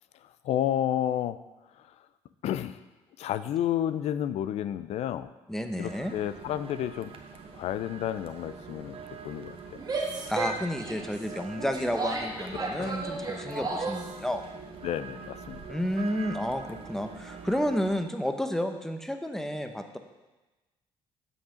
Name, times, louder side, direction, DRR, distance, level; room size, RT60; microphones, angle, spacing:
voice 1, 0.4-1.4 2.4-2.8 3.2-5.3 5.8-7.1 7.6-9.0 9.2-9.8 12.5-13.0 14.8-15.6, left 11 dB, 70° left, 14 dB, 0.4 m, -31 dB
voice 2, 5.5-6.1 10.3-14.4 15.7-20.0, equal, 5° left, 6 dB, 0.9 m, -31 dB
sound 1, 5.8-18.0, right 5 dB, 55° right, 1.0 m, -44 dB
Female speech woman speaking / Yell, 9.8-14.1, right 3 dB, 35° right, 1.8 m, -34 dB
8.1 x 5.7 x 5.1 m, 1.1 s
supercardioid pair, 75°, 11 cm